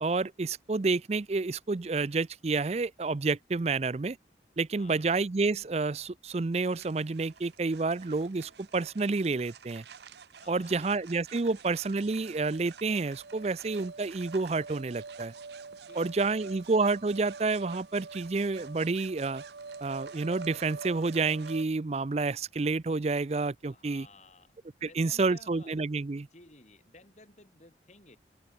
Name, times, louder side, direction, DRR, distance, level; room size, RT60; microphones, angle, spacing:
voice 1, 0.0-4.2 4.6-9.8 10.5-15.3 15.9-19.4 19.8-24.1 24.8-26.3, right 3 dB, 35° right, 0.5 m, -29 dB
voice 2, 4.8-5.1 10.4-11.1 11.4-11.6 15.9-16.6 23.7-24.5 24.8-25.7 26.2-28.2, left 2 dB, 40° left, 5.2 m, -56 dB
sound 1, 6.5-21.6, right 5 dB, 70° right, 0.8 m, -47 dB
open air
head